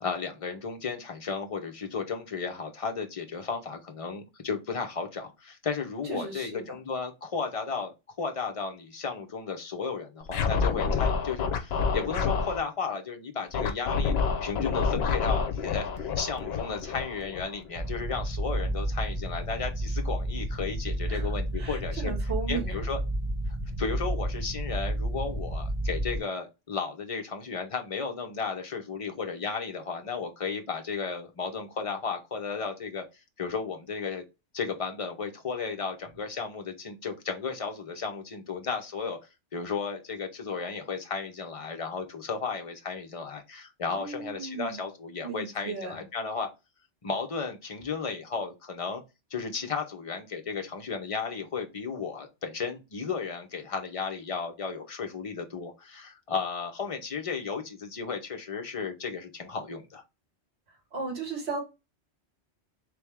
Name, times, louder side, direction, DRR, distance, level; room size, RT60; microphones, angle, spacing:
voice 1, 0.0-14.1 14.4-22.1 22.5-23.0 23.5-33.0 33.4-34.2 34.5-39.2 39.5-46.5 47.0-49.0 49.3-60.0, left 5 dB, 35° left, 0.7 m, -34 dB
voice 2, 6.0-6.8 21.1-22.8 43.9-44.8 45.2-46.0 60.9-61.6, right 5 dB, 65° right, 1.6 m, -36 dB
Scratching (performance technique), 10.3-12.6 13.5-17.8, left 5 dB, 65° left, 0.9 m, -28 dB
sound 1, 17.7-26.2, right 1 dB, 25° right, 1.1 m, -31 dB
3.4 x 3.3 x 3.4 m
omnidirectional pair, 1.2 m